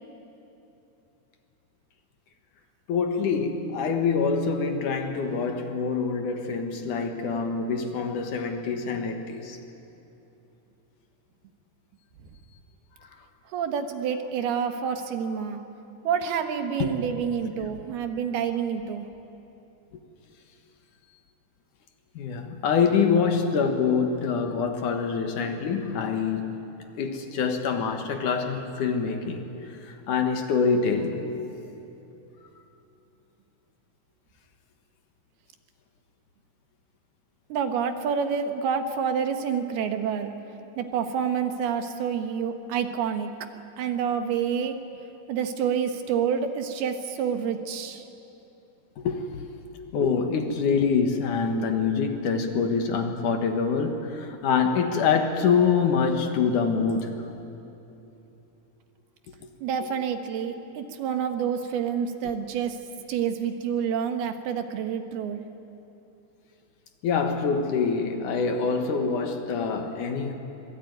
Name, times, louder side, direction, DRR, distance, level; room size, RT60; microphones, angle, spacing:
voice 1, 2.9-9.6 16.8-16.9 22.2-26.7 27.0-31.3 49.0-49.4 49.9-57.3 67.0-70.3, left 5 dB, 60° left, 5 dB, 2.7 m, -25 dB
voice 2, 13.5-15.6 16.0-19.0 37.5-40.3 40.8-43.3 43.8-44.8 45.3-48.1 59.6-62.8 63.1-65.4, right 7 dB, 85° right, 6 dB, 3.4 m, -28 dB
25.5 x 21.5 x 9.4 m, 2.9 s
omnidirectional pair, 4.4 m